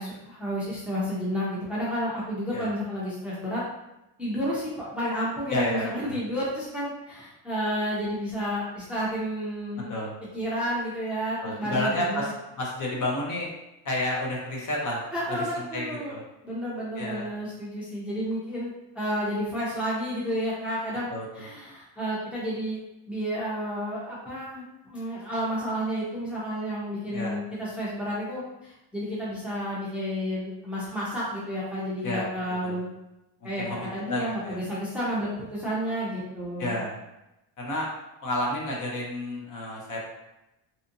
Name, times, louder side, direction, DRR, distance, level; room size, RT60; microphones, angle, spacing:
voice 1, 0.0-3.6 4.2-9.9 10.3-12.3 15.1-16.2 16.4-22.8 23.1-32.9 33.4-33.6 33.9-36.8, equal, 5° right, -7 dB, 0.5 m, -31 dB
voice 2, 5.5-6.2 9.9-10.1 11.4-13.5 13.8-16.2 17.0-17.3 21.1-21.5 27.1-27.4 32.0-32.7 33.6-33.8 34.1-34.6 36.6-36.9 37.6-37.9 38.2-40.0, left 1 dB, 40° left, -2 dB, 0.7 m, -31 dB
2.7 x 2.4 x 2.5 m, 0.93 s
cardioid pair, 120°, 49 cm